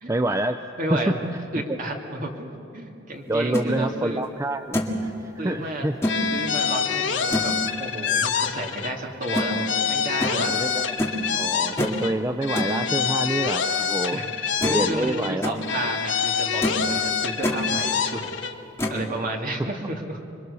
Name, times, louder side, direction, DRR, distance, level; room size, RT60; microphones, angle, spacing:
voice 1, 0.1-0.6 0.9-1.1 3.3-6.0 10.5-11.0 11.3-14.2 14.7-15.5, right 1 dB, 15° right, 8 dB, 0.5 m, -27 dB
voice 2, 0.8-4.2 5.4-5.9 6.3-7.5 7.8-10.5 14.1-18.2 18.9-20.2, right 1 dB, 45° right, 1 dB, 2.5 m, -32 dB
sound 1, 3.3-3.7 4.2-4.3 4.7-5.0 6.0-6.2 7.3-7.6 9.3-9.5 10.2-10.4 11.0-11.2 11.8-12.0 12.6-12.8 14.1-14.2 14.6-14.9 15.2-15.6 16.1-16.2 16.6-16.9 17.2-17.6 18.8-19.0, left 1 dB, 15° left, 2.1 m, -26 dB
sound 2, 6.0-8.9 9.2-12.1 12.4-15.3 15.6-18.5, left 7 dB, 70° left, 1.4 m, -26 dB
27.0 x 23.0 x 6.9 m, 2.7 s
head